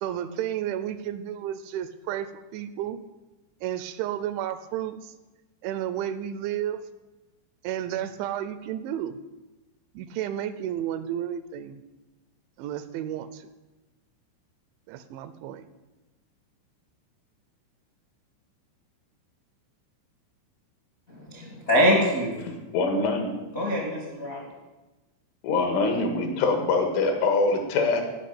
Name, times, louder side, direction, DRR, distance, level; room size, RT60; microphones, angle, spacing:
voice 1, 0.0-3.0 3.6-5.1 5.6-6.8 7.6-9.2 9.9-11.8 12.6-13.5 14.9-15.7, right 11 dB, 80° right, 12 dB, 2.9 m, -32 dB
voice 2, 21.1-22.4 23.5-24.5, equal, 55° left, -1 dB, 0.9 m, -24 dB
voice 3, 22.4-23.3 25.4-28.0, left 3 dB, 80° left, 4 dB, 4.1 m, -24 dB
14.0 x 5.6 x 8.5 m, 1.1 s
omnidirectional pair, 5.5 m